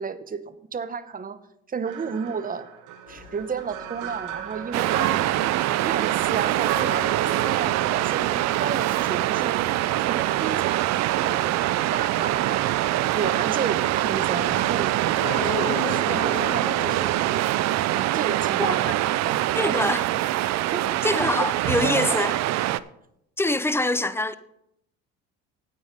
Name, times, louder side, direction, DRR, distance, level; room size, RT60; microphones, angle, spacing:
voice 1, 0.0-1.4 1.7-2.7 3.1-9.6 10.1-10.9 11.2-11.5 11.9-12.7 13.1-15.0 15.3-17.5 17.9-19.8 20.7-21.0 21.4-21.5 21.8-22.2, right 5 dB, 30° right, 0.9 m, -32 dB
sound 1, 1.9-9.0, right 9 dB, 75° right, 1.1 m, -34 dB
sound 2, 3.1-17.2, left 7 dB, 90° left, 1.5 m, -41 dB
Waves surf, 4.7-22.8, right 15 dB, 60° right, 0.5 m, -24 dB
voice 2, 18.6-18.9 19.6-20.0 21.0-22.3 23.4-24.3, left 2 dB, 10° left, 0.6 m, -24 dB
9.0 x 8.3 x 5.3 m
supercardioid pair, 80°, 30 cm